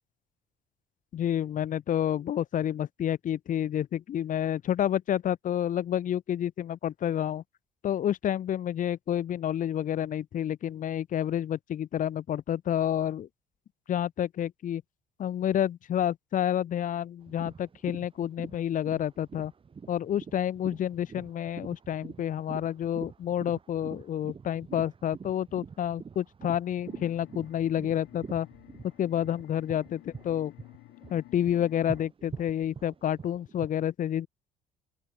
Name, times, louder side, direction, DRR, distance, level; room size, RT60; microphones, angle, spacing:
voice 1, 1.1-7.4 7.8-13.3 13.9-14.8 15.2-19.5 19.9-28.5 29.0-30.5 31.1-34.3, left 10 dB, 50° left, 1.2 m, -29 dB
sound 1, 17.2-30.3 30.6-33.7, right 6 dB, 30° right, 3.4 m, -45 dB
sound 2, 26.8-32.1, left 19 dB, 90° left, 7.0 m, -52 dB
open air
cardioid pair, 110°, 17 cm